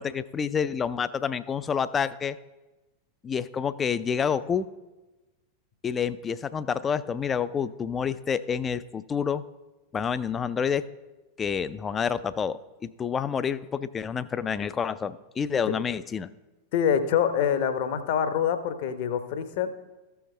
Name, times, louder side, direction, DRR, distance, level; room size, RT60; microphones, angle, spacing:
voice 1, 0.0-2.4 3.2-4.7 5.8-9.4 9.9-10.9 11.4-16.3, left 7 dB, 20° left, 16 dB, 0.4 m, -28 dB
voice 2, 16.7-19.7, left 8 dB, 50° left, 10 dB, 0.8 m, -25 dB
14.5 x 5.7 x 3.2 m, 1.1 s
figure-of-eight pair, 90°, 0 cm